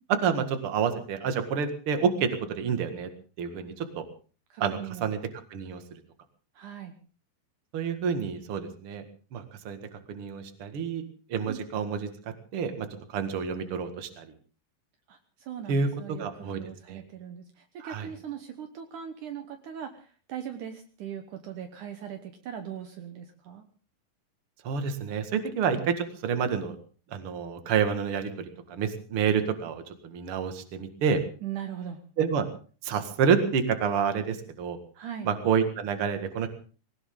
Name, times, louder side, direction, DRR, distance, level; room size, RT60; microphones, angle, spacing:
voice 1, 0.2-3.1 3.4-4.0 4.6-5.2 5.5-6.0 7.7-9.0 9.3-9.8 10.1-11.0 11.3-12.1 12.5-14.3 15.7-16.6 16.9-17.0 17.8-18.1 24.6-26.8 27.1-31.2 32.2-32.4 32.8-34.8 35.2-36.5, right 6 dB, 45° right, 7 dB, 2.4 m, -28 dB
voice 2, 4.5-5.1 6.6-6.9 11.5-11.6 15.1-23.6 31.4-32.0 35.0-35.3, right 9 dB, 65° right, 6 dB, 2.5 m, -40 dB
20.0 x 18.5 x 3.8 m, 0.38 s
omnidirectional pair, 4.1 m